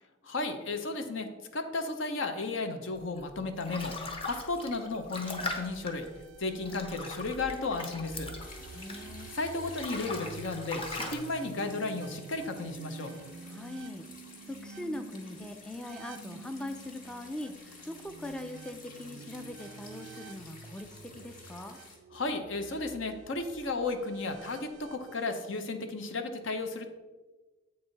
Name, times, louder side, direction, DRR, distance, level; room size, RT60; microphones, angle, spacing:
voice 1, 0.2-3.9 4.3-6.1 6.4-8.3 9.3-13.1 22.1-26.9, left 3 dB, 70° left, 7 dB, 0.8 m, -34 dB
sound 1, 3.2-9.2 9.6-11.1, left 2 dB, 30° left, 0.9 m, -40 dB
sound 2, 5.6-25.4, right 4 dB, 80° right, 0.4 m, -49 dB
sound 3, 8.4-22.0, left 2 dB, 45° left, 1.4 m, -52 dB
voice 2, 8.7-9.3 13.5-14.0 14.5-21.8, left 1 dB, 5° left, 6 dB, 0.3 m, -41 dB
7.8 x 5.5 x 4.0 m, 1.2 s
head